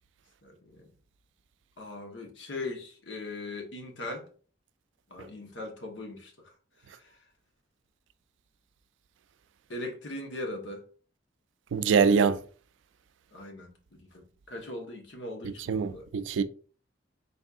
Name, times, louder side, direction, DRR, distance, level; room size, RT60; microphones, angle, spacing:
voice 1, 0.4-0.9 1.8-4.3 5.1-6.5 6.8-7.2 9.7-10.8 13.3-16.1, left 2 dB, 75° left, 1.0 m, -40 dB
voice 2, 11.7-12.4 15.7-16.4, right 6 dB, 80° right, 0.3 m, -24 dB
4.1 x 3.5 x 2.4 m
head